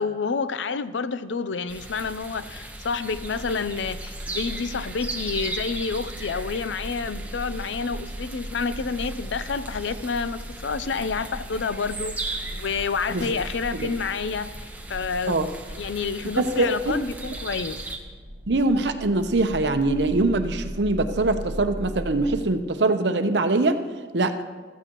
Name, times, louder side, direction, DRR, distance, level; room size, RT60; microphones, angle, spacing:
voice 1, 0.0-15.4 15.7-17.8, left 5 dB, 85° left, 13 dB, 0.6 m, -29 dB
sound 1, 1.7-18.0, right 2 dB, 10° right, 1.0 m, -37 dB
sound 2, 3.1-22.3, equal, 25° left, 4.1 m, -39 dB
voice 2, 16.4-16.9 18.5-23.8 24.1-24.4, right 2 dB, 70° right, 8 dB, 0.8 m, -23 dB
15.5 x 14.0 x 3.0 m, 1.5 s
head